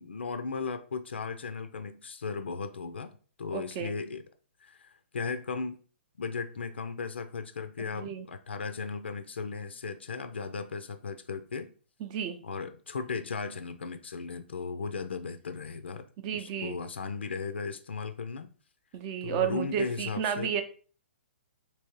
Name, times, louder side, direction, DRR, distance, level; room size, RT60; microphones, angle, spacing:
voice 1, 0.0-4.2 4.6-5.8 6.2-11.7 12.4-16.1 16.3-18.5 19.2-20.5, left 5 dB, 65° left, 0.5 m, -36 dB
voice 2, 3.5-3.9 7.9-8.3 12.0-12.4 16.2-16.8 18.9-20.6, right 8 dB, 30° right, 0.6 m, -32 dB
3.4 x 2.9 x 4.3 m
figure-of-eight pair, 120°, 6 cm